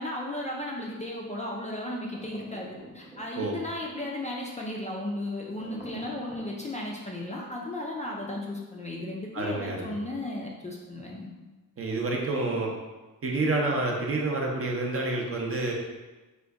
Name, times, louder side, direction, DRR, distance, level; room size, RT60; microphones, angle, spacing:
voice 1, 0.0-11.3, left 1 dB, 20° left, -2 dB, 0.3 m, -35 dB
sound 1, 2.1-3.6 5.6-6.5, equal, 15° right, 0.8 m, -45 dB
voice 2, 9.3-9.9 11.8-12.7 13.2-15.7, right 2 dB, 40° right, 0 dB, 0.6 m, -28 dB
3.7 x 2.2 x 3.4 m, 1.2 s
wide cardioid pair, 120°, 34 cm